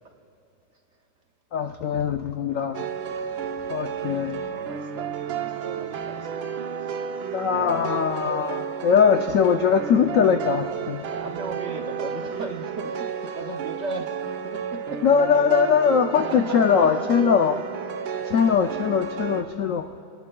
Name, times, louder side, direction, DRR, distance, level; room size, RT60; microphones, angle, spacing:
voice 1, 1.5-2.9 3.7-4.4 7.3-11.0 15.0-17.6 18.2-19.9, left 7 dB, 85° left, 6 dB, 0.7 m, -21 dB
sound 1, 2.7-19.4, right 7 dB, 90° right, 1.5 m, -32 dB
voice 2, 4.5-6.3 6.8-7.1 7.4-7.9 11.1-14.2 14.4-15.0 16.3-16.4 16.8-17.0 19.3-19.4, right 3 dB, 55° right, 3 dB, 0.8 m, -37 dB
28.0 x 19.0 x 2.3 m, 2.7 s
omnidirectional pair, 2.0 m